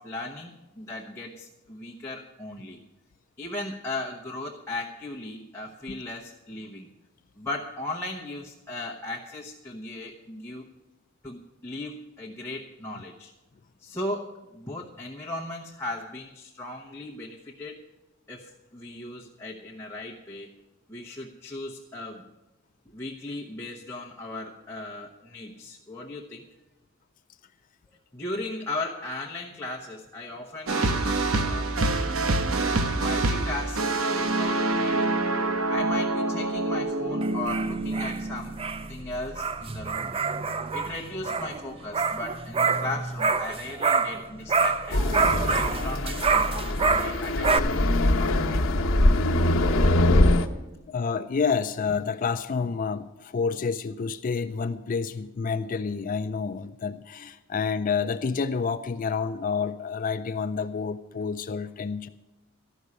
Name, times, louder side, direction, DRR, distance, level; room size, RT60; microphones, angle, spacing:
voice 1, 0.0-2.8 3.4-6.9 7.4-10.7 11.2-13.3 13.8-17.8 18.3-20.5 20.9-22.2 22.9-26.5 28.1-31.0 31.4-31.7 32.9-38.6 38.9-40.1 40.7-45.0 45.5-48.6, left 2 dB, 10° left, -2 dB, 0.9 m, -37 dB
sound 1, 30.7-38.8, right 2 dB, 80° right, 0.9 m, -26 dB
sound 2, 37.2-44.2 44.5-47.6, right 4 dB, 25° right, 0.5 m, -27 dB
sound 3, 44.9-50.5, left 1 dB, 75° left, 1.0 m, -23 dB
voice 2, 50.9-62.1, left 5 dB, 40° left, 10 dB, 0.4 m, -29 dB
13.5 x 6.2 x 9.6 m, 1.0 s
head